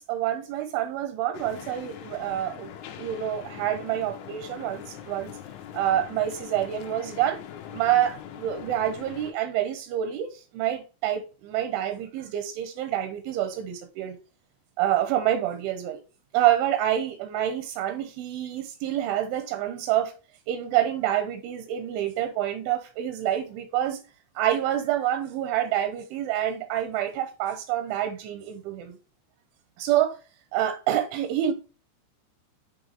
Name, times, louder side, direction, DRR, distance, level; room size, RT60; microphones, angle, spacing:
voice 1, 0.0-2.7 3.0-5.4 5.7-7.4 7.7-14.2 14.8-16.0 16.3-20.1 20.5-24.0 24.4-29.0 29.8-30.2 30.5-31.5, right 11 dB, 85° right, 3.0 m, -27 dB
sound 1, 1.3-9.3, left 10 dB, 80° left, 3.0 m, -42 dB
8.8 x 3.1 x 3.5 m
omnidirectional pair, 5.7 m